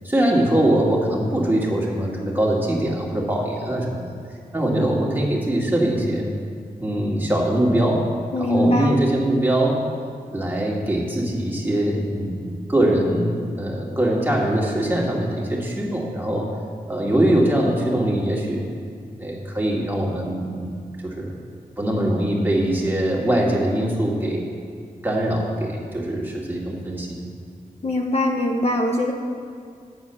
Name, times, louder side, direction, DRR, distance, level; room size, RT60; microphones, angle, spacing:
voice 1, 0.0-4.1 4.5-6.3 6.8-8.0 8.4-9.8 10.3-16.5 16.9-18.6 19.2-21.4 21.8-24.4 25.0-27.2, right 1 dB, 15° right, -3 dB, 2.1 m, -22 dB
voice 2, 8.3-9.0 27.8-29.1, left 1 dB, 40° left, 1 dB, 0.8 m, -22 dB
9.3 x 4.6 x 7.0 m, 2.2 s
cardioid pair, 55°, 16 cm